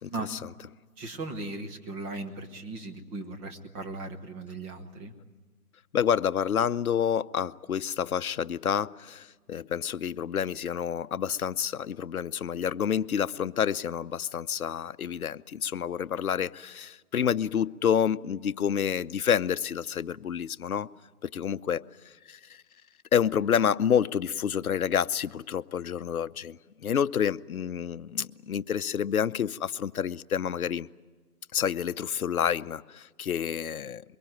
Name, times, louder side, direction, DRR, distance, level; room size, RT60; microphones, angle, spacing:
voice 1, 0.0-0.4 5.9-20.9 21.2-21.8 22.3-22.4 23.1-30.9 31.5-34.0, left 8 dB, 65° left, 0.8 m, -28 dB
voice 2, 1.0-5.1, right 2 dB, 15° right, 1.2 m, -37 dB
23.0 x 23.0 x 9.2 m
figure-of-eight pair, 150°, 46 cm